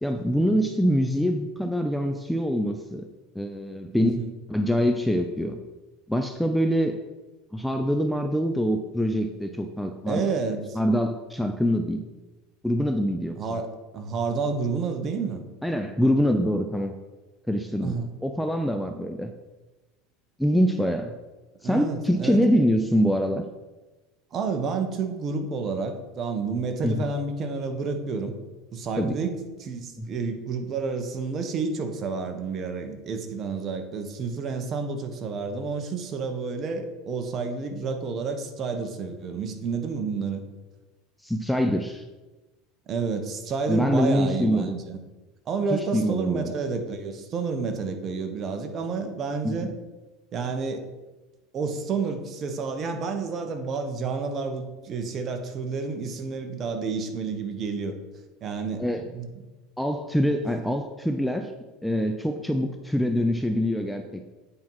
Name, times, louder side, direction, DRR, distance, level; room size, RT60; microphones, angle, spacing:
voice 1, 0.0-3.1 3.3-4.2 4.5-5.6 6.1-7.0 7.5-10.3 10.7-12.1 12.6-13.4 15.6-16.9 17.5-19.3 20.4-21.1 21.6-23.4 26.8-27.0 29.0-29.2 30.0-30.1 41.2-42.0 43.7-44.8 45.7-46.5 49.4-49.7 58.8-59.0 59.8-61.5 61.8-64.3, equal, ahead, 6 dB, 0.5 m, -24 dB
voice 2, 3.9-4.3 10.1-10.8 13.4-15.4 17.8-18.1 21.6-22.4 24.3-28.3 28.7-40.4 42.9-45.0 45.5-49.7 50.3-50.9 51.5-57.9 58.4-59.3, right 4 dB, 35° right, 6 dB, 1.2 m, -30 dB
8.6 x 4.5 x 5.6 m, 1.1 s
supercardioid pair, 125°, 0 cm